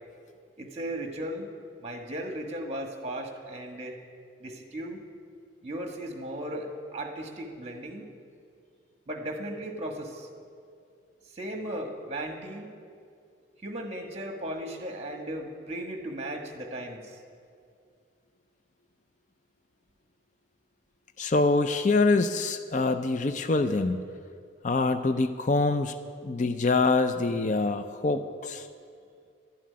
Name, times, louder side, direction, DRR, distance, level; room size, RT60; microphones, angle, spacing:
voice 1, 0.6-1.5 1.8-4.0 4.4-5.0 5.6-8.1 9.1-10.3 11.3-12.7 13.6-17.2, right 1 dB, 30° right, 3 dB, 1.4 m, -36 dB
voice 2, 21.2-24.0 24.6-25.9 26.2-28.7, left 3 dB, 40° left, 9 dB, 0.4 m, -25 dB
12.0 x 7.5 x 9.6 m, 2.3 s
head